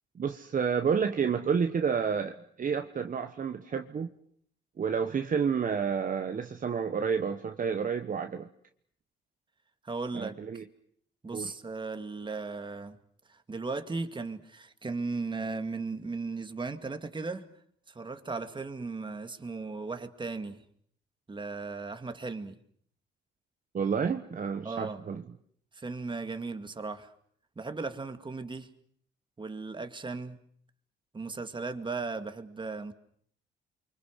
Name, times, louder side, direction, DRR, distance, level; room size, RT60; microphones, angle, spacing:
voice 1, 0.2-4.1 4.8-8.5 10.1-10.6 11.3-11.5 23.7-25.2, right 6 dB, 40° right, 6 dB, 1.3 m, -30 dB
voice 2, 9.8-10.4 11.2-13.0 13.3-17.5 17.9-20.6 21.3-22.6 24.6-25.0 25.7-27.1 27.6-28.7 29.4-30.4 31.1-32.9, right 3 dB, 25° right, 8 dB, 2.2 m, -36 dB
29.0 x 24.5 x 6.5 m, 0.63 s
cardioid pair, 90°, 20 cm